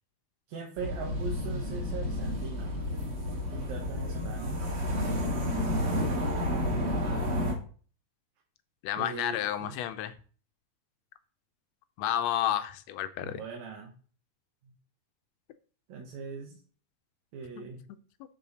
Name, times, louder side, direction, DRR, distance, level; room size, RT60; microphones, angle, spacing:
voice 1, 0.5-2.8 3.5-4.6 9.0-9.8 13.2-13.9 14.6-14.7 15.9-16.6 17.3-17.8, right 5 dB, 75° right, 0 dB, 2.6 m, -40 dB
sound 1, 0.8-7.5, left 1 dB, 35° right, 1.1 m, -31 dB
voice 2, 8.8-10.1 12.0-13.4, left 11 dB, 75° left, 11 dB, 1.7 m, -31 dB
12.0 x 4.2 x 4.1 m, 0.42 s
omnidirectional pair, 3.3 m